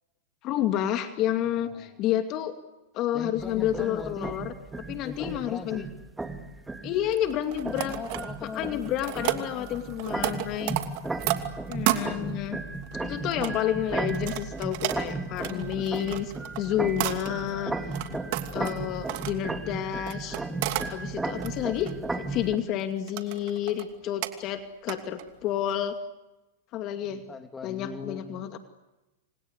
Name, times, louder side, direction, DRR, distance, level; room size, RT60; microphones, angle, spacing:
voice 1, 0.4-2.6 2.9-4.5 4.9-5.8 6.8-8.0 8.5-10.7 11.7-12.6 13.0-17.7 18.5-20.4 20.9-26.0 26.7-27.2 27.6-28.6, left 11 dB, 40° left, 7 dB, 2.4 m, -30 dB
voice 2, 1.6-2.0 3.1-4.3 5.0-5.9 7.7-9.8 15.4-15.9 17.3-17.9 27.1-28.6, left 4 dB, 15° left, 7 dB, 2.9 m, -41 dB
sound 1, 3.4-22.6, right 3 dB, 10° right, 2.4 m, -35 dB
sound 2, 7.1-8.6 8.8-12.0 12.7-13.5 14.1-17.5 17.9-19.3 20.1-20.9 21.3-21.9 22.4-22.8 23.1-23.9 24.2-24.3 24.9-25.4 25.7-25.8, right 17 dB, 55° right, 2.7 m, -32 dB
29.0 x 25.5 x 8.1 m, 1.0 s
hypercardioid pair, 125°, 0 cm